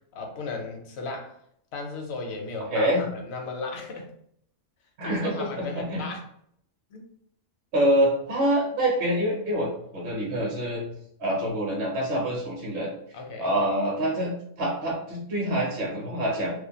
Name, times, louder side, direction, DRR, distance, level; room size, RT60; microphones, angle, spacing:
voice 1, 0.1-1.4 1.7-4.1 5.0-6.2 6.9-7.1 13.1-13.6, left 3 dB, 65° left, 3 dB, 0.7 m, -35 dB
voice 2, 2.7-3.0 5.0-6.0 7.7-10.8 11.2-12.9 13.4-16.5, equal, 55° right, -3 dB, 0.8 m, -26 dB
2.4 x 2.1 x 2.7 m, 0.70 s
omnidirectional pair, 1.4 m